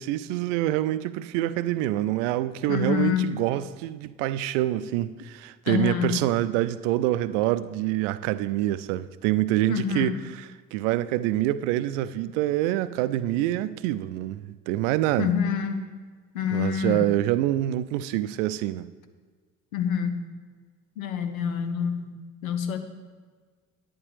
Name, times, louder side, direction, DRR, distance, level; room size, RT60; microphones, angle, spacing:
voice 1, 0.0-15.3 16.5-18.9, right 14 dB, 60° right, 0.5 m, -26 dB
voice 2, 2.7-3.3 5.7-6.2 9.7-10.2 15.2-15.8 16.3-17.1 19.7-20.2 21.0-22.8, left 8 dB, 80° left, 0.8 m, -27 dB
11.0 x 8.7 x 3.4 m
figure-of-eight pair, 55°, 41 cm